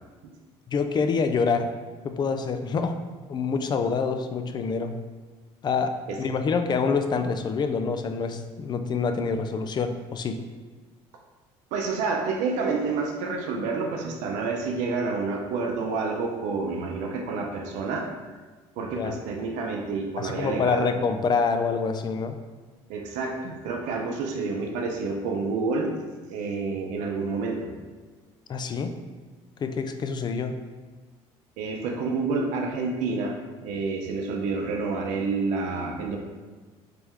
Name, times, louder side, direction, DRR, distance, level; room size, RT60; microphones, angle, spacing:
voice 1, 0.7-1.7 2.0-2.9 3.3-4.9 5.6-5.9 6.2-10.4 18.9-19.1 20.2-22.4 28.5-28.9 29.6-30.5, left 5 dB, 35° left, 7 dB, 0.3 m, -26 dB
voice 2, 11.7-18.1 18.8-20.9 22.9-25.9 26.3-27.7 31.6-36.2, right 4 dB, 80° right, 2 dB, 0.6 m, -29 dB
3.3 x 3.0 x 3.6 m, 1.4 s
supercardioid pair, 95°, 12 cm